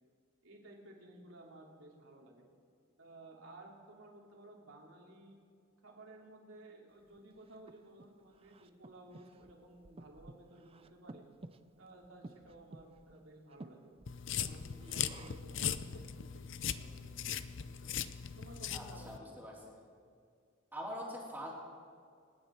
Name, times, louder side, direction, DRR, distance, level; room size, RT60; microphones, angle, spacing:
voice 1, 0.4-2.5 3.0-5.4 5.8-11.2 11.8-13.9 14.4-17.2 17.6-17.9 18.4-19.4, right 1 dB, 80° right, -1 dB, 3.1 m, -55 dB
Breathing, 7.1-15.6, right 2 dB, 30° right, 0.5 m, -55 dB
sound 1, 14.1-19.2, left 9 dB, 60° left, 0.6 m, -39 dB
voice 2, 18.7-19.6 20.7-21.5, equal, 10° right, -3 dB, 3.0 m, -43 dB
27.0 x 9.8 x 4.5 m, 2.2 s
head